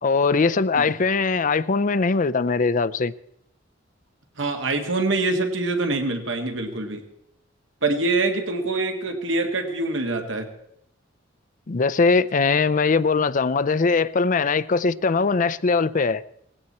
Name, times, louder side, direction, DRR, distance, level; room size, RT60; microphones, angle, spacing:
voice 1, 0.0-3.1 11.7-16.2, left 4 dB, 40° left, 0.5 m, -21 dB
voice 2, 4.4-7.0 7.8-10.5, right 2 dB, 70° right, 1.9 m, -25 dB
18.5 x 16.0 x 4.3 m
head